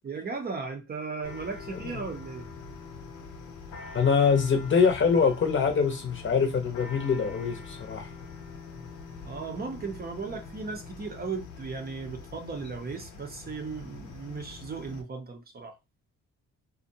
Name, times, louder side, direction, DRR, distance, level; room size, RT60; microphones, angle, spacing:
voice 1, 0.0-2.4 9.2-15.8, right 4 dB, 30° right, 0.5 m, -36 dB
sound 1, 1.2-15.0, left 4 dB, 80° left, 0.7 m, -44 dB
voice 2, 3.9-8.1, left 5 dB, 40° left, 0.7 m, -24 dB
2.5 x 2.1 x 2.6 m
cardioid pair, 90°, 30 cm